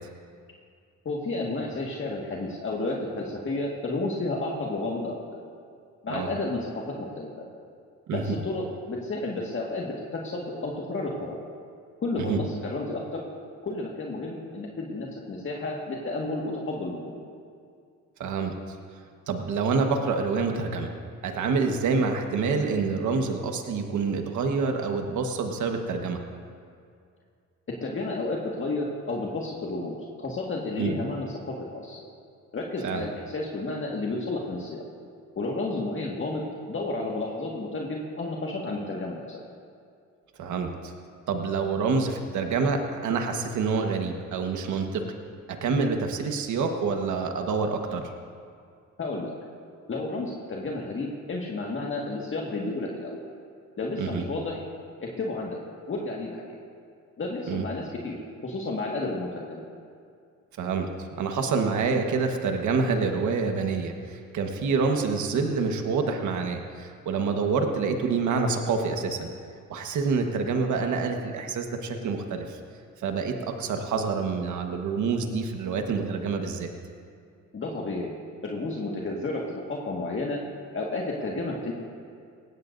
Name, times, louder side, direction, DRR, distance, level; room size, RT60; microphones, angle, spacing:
voice 1, 1.1-5.2 6.0-6.7 7.2-7.3 8.1-11.4 12.0-13.2 13.6-17.1 27.8-32.0 32.5-34.8 35.4-39.4 49.0-49.3 49.9-53.3 53.8-54.6 55.0-55.6 55.9-56.6 57.2-58.2 58.4-59.6 77.5-78.2 78.4-80.4 80.7-81.7, left 2 dB, 40° left, -2 dB, 1.8 m, -31 dB
voice 2, 18.2-18.5 19.3-20.9 21.2-26.2 30.8-30.9 32.8-33.0 40.4-40.9 41.3-45.0 45.6-48.1 54.0-54.2 57.5-57.6 60.6-60.9 61.2-69.3 69.7-72.6 73.0-76.7, right 4 dB, 75° right, 4 dB, 1.4 m, -27 dB
19.0 x 16.0 x 2.7 m, 2.3 s
cardioid pair, 90°, 30 cm